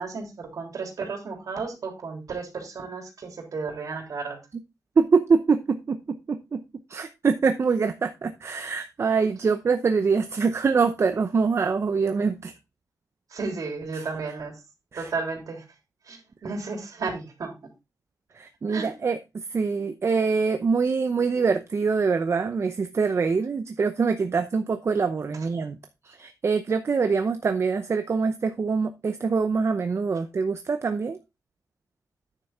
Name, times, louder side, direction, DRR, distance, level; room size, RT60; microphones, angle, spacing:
voice 1, 0.0-4.4 13.3-14.5 14.9-15.6 16.1-17.5 18.7-18.9, right 4 dB, 65° right, 2 dB, 3.3 m, -33 dB
voice 2, 5.0-6.6 6.9-12.5 13.9-14.1 14.9-15.1 18.3-25.8 26.0-31.2, right 5 dB, 45° right, 8 dB, 0.7 m, -24 dB
9.9 x 7.0 x 3.6 m, 0.25 s
wide cardioid pair, 135°, 7 cm